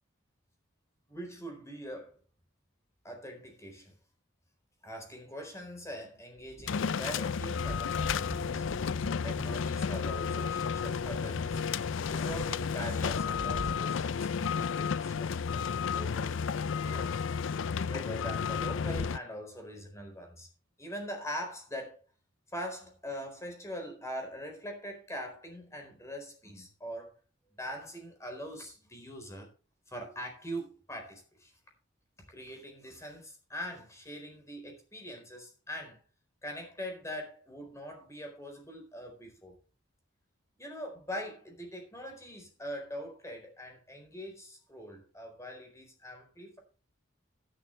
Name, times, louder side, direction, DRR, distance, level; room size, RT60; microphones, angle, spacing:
voice 1, 1.1-2.2 3.0-3.9 4.8-8.6 9.2-11.6 12.1-16.4 16.8-17.3 17.9-20.5 20.8-22.0 22.5-27.1 27.6-29.5 29.9-31.5 32.3-36.0 36.4-39.6 40.6-46.6, equal, 15° left, 4.2 m, -42 dB
sound 1, 6.4-13.7, equal, 15° right, 2.0 m, -45 dB
sound 2, 6.7-19.2, left 6 dB, 75° left, 0.4 m, -32 dB
12.5 x 11.0 x 3.3 m
head